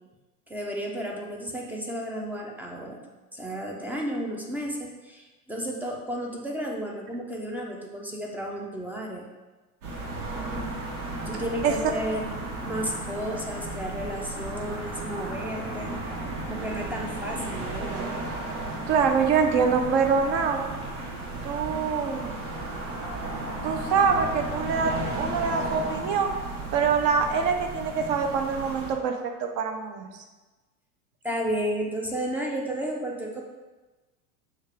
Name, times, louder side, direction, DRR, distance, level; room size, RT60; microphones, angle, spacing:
voice 1, 0.5-3.0 3.3-9.3 11.3-12.3 12.6-15.9 16.5-18.2 31.2-33.4, equal, 5° right, -1 dB, 0.4 m, -32 dB
sound 1, 9.8-28.9, right 2 dB, 80° right, 1.3 m, -34 dB
voice 2, 18.7-20.7 21.4-22.3 23.6-26.3 26.7-30.1, right 6 dB, 40° right, 5 dB, 0.7 m, -25 dB
6.3 x 2.4 x 3.3 m, 1.2 s
hypercardioid pair, 100°, 44 cm